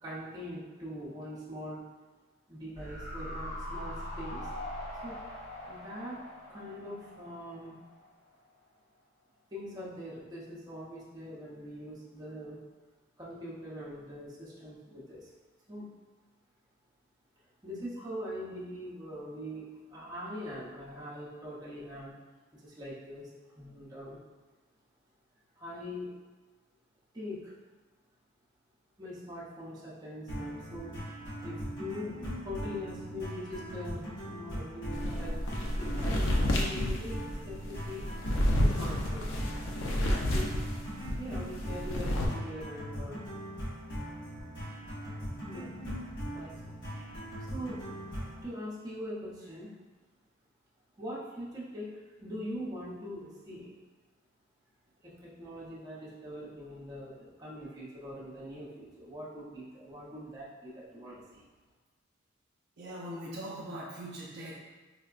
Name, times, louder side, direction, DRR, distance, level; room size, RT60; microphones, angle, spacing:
voice 1, 0.0-1.8 2.5-4.5 5.0-5.2 5.7-6.2 6.5-7.8 9.5-12.6 13.2-15.3 15.7-15.9 17.6-22.1 22.5-23.3 23.5-24.2 25.6-26.1 27.1-27.5 29.0-30.9 31.4-38.1 38.6-39.4 40.2-40.5 41.2-43.2 45.4-45.7 46.3-46.7 47.4-47.8 48.2-49.8 51.0-53.7 55.0-61.4, equal, 20° right, -8 dB, 0.8 m, -42 dB
sound 1, 2.8-8.0 8.3-8.4, left 1 dB, 35° left, 0.7 m, -42 dB
sound 2, 30.3-48.4, equal, 60° left, 1.0 m, -40 dB
sound 3, 34.9-41.2 41.5-42.3, left 1 dB, 75° left, 0.5 m, -30 dB
voice 2, 62.8-64.6, right 1 dB, 55° right, -5 dB, 0.5 m, -41 dB
4.4 x 2.1 x 2.4 m, 1.3 s
head